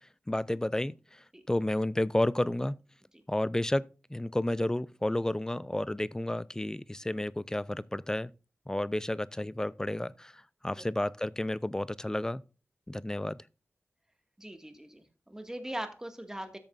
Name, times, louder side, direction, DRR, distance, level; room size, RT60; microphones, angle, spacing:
voice 1, 0.0-2.8 3.3-8.3 8.7-12.4 12.9-13.4, left 1 dB, 15° left, 0.4 m, -31 dB
voice 2, 14.4-16.6, right 1 dB, 10° right, 1.8 m, -40 dB
13.5 x 7.2 x 2.5 m
wide cardioid pair, 70°, 5 cm